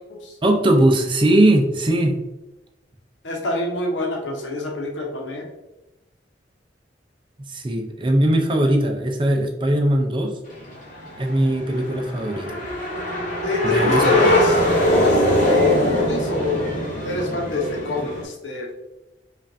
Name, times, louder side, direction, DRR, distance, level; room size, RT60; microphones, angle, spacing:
voice 1, 0.4-2.1 7.5-10.3 11.2-12.6 13.6-14.0, right 1 dB, 25° right, 3 dB, 0.5 m, -19 dB
voice 2, 3.2-5.5 13.4-16.7 17.0-18.7, left 3 dB, 90° left, 0 dB, 0.9 m, -25 dB
sound 1, 10.5-18.2, equal, 45° left, 0.9 m, -22 dB
5.3 x 2.5 x 2.6 m, 0.99 s
head